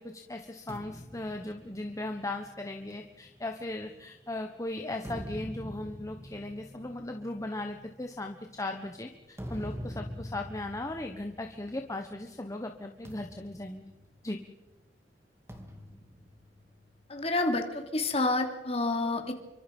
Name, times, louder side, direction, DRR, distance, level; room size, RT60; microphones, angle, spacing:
voice 1, 0.0-13.9 14.2-14.4, left 2 dB, 20° left, 4 dB, 1.2 m, -37 dB
sound 1, 0.7-4.3 4.8-12.2 12.5-12.7 13.1-14.7 15.5-17.2, equal, 15° right, 2.6 m, -45 dB
voice 2, 17.1-19.3, left 2 dB, 35° left, 4 dB, 3.0 m, -29 dB
28.0 x 24.5 x 5.5 m, 1.1 s
head